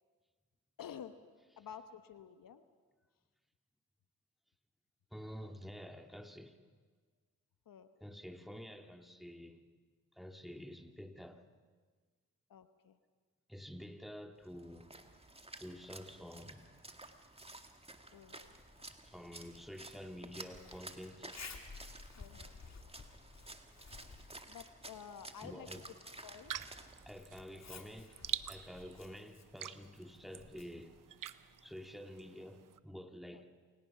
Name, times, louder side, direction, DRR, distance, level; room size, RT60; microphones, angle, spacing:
voice 1, 0.8-1.1 1.6-2.6 7.7-7.9 12.5-13.0 18.1-18.5 22.2-22.6 24.5-25.7 26.1-26.6 33.3-33.4, left 8 dB, 70° left, 1.1 m, -51 dB
voice 2, 5.1-6.6 8.0-9.6 10.1-11.5 13.5-14.9 15.6-16.7 18.9-21.3 22.4-22.5 25.4-25.9 27.1-28.2 28.5-31.0 31.6-33.4, equal, ahead, 2.1 m, -49 dB
Splash splatter, 14.4-27.2, right 2 dB, 15° right, 1.9 m, -53 dB
Zipper (clothing), 18.4-32.0, left 4 dB, 50° left, 2.6 m, -56 dB
sound 1, 26.5-32.8, right 10 dB, 65° right, 0.8 m, -46 dB
28.0 x 17.5 x 5.8 m
supercardioid pair, 45°, 35 cm